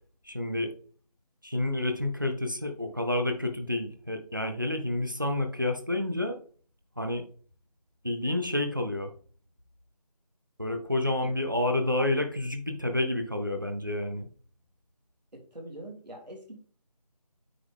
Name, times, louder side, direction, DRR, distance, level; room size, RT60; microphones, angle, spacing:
voice 1, 0.2-0.7 1.4-6.4 7.0-7.2 8.0-9.1 10.6-14.3, left 1 dB, 30° right, 6 dB, 0.7 m, -29 dB
voice 2, 15.3-16.6, right 1 dB, 90° right, 1 dB, 3.2 m, -43 dB
8.7 x 4.4 x 3.5 m, 0.42 s
figure-of-eight pair, 180°, 21 cm